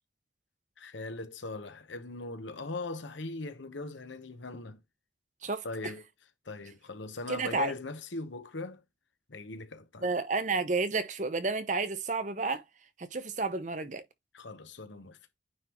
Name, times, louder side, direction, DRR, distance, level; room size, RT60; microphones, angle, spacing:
voice 1, 0.8-4.8 5.6-6.0 6.4-8.8 9.3-10.1 14.3-15.2, left 3 dB, 80° left, 1.1 m, -40 dB
voice 2, 7.3-7.7 10.0-12.6 13.0-14.0, right 3 dB, 40° right, 0.8 m, -31 dB
9.3 x 3.6 x 3.0 m
head